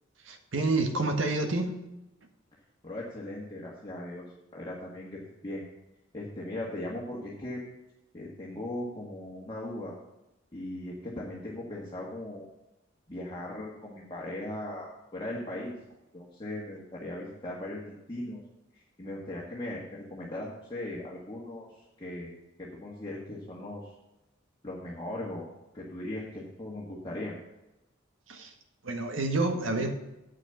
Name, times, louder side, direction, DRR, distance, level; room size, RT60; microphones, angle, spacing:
voice 1, 0.2-1.7 28.3-28.5 28.8-29.9, right 2 dB, 85° right, 5 dB, 1.5 m, -28 dB
voice 2, 2.8-4.2 4.5-5.1 5.4-5.6 6.1-7.6 8.1-9.9 10.5-12.5 13.1-15.7 16.1-18.4 19.0-22.3 22.6-23.9 24.6-25.5 25.7-27.4, left 1 dB, 25° left, -5 dB, 1.8 m, -38 dB
8.4 x 6.4 x 7.9 m, 0.96 s
head